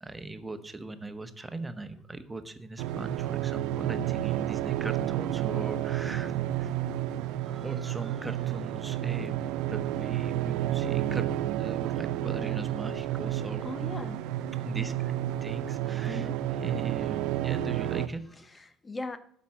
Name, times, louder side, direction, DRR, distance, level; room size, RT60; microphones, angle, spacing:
voice 1, 0.0-6.3 6.6-6.7 7.4-13.6 14.6-15.1 15.4-18.5, right 2 dB, 15° right, 10 dB, 1.1 m, -40 dB
sound 1, 2.8-18.1, right 12 dB, 65° right, 0.5 m, -31 dB
voice 2, 13.6-14.2 16.1-16.4 18.5-19.2, left 3 dB, 25° left, 12 dB, 0.8 m, -39 dB
12.5 x 5.3 x 6.0 m, 0.67 s
figure-of-eight pair, 55°, 0 cm